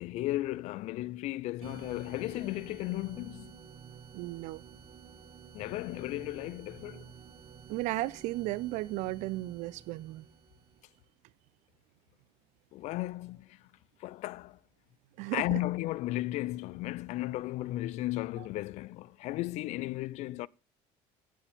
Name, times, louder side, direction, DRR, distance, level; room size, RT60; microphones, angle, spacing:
voice 1, 0.0-3.6 5.5-7.0 12.7-13.6 14.0-14.6 15.3-20.5, left 17 dB, 70° left, 0.5 m, -35 dB
sound 1, 1.6-11.0, right 6 dB, 55° right, 2.2 m, -51 dB
voice 2, 4.1-4.6 7.7-10.2 15.2-15.4, right 18 dB, 75° right, 0.6 m, -34 dB
15.0 x 7.3 x 3.5 m
cardioid pair, 115°, 12 cm